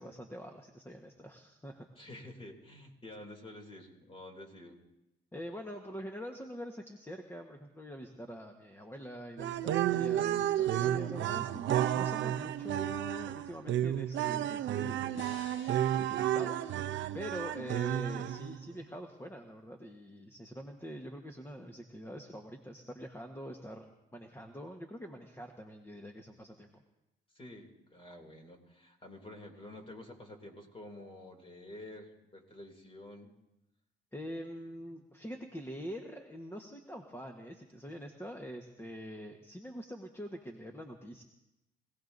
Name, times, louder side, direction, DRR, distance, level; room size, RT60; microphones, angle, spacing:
voice 1, 0.0-1.9 5.3-15.4 16.0-16.6 17.1-23.9 24.1-26.8 34.1-41.2, equal, 10° left, 3 dB, 1.2 m, -45 dB
voice 2, 1.9-4.8 27.3-33.3, left 1 dB, 25° left, 2 dB, 2.8 m, -49 dB
sound 1, 9.4-18.6, right 11 dB, 70° right, 0.6 m, -32 dB
sound 2, 15.1-18.4, left 5 dB, 75° left, 1.4 m, -55 dB
25.0 x 17.5 x 2.7 m, 0.91 s
cardioid pair, 90°, 20 cm